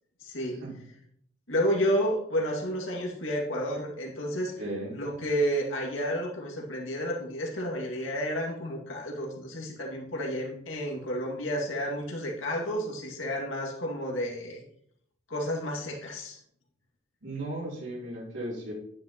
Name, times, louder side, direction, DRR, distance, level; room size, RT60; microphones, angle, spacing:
voice 1, 0.2-0.6 1.5-4.5 4.9-14.6 15.3-16.4, equal, 80° left, -1 dB, 2.1 m, -31 dB
voice 2, 4.6-5.0 17.2-18.7, right 1 dB, 75° right, -7 dB, 3.5 m, -36 dB
10.0 x 9.5 x 3.0 m, 0.69 s
head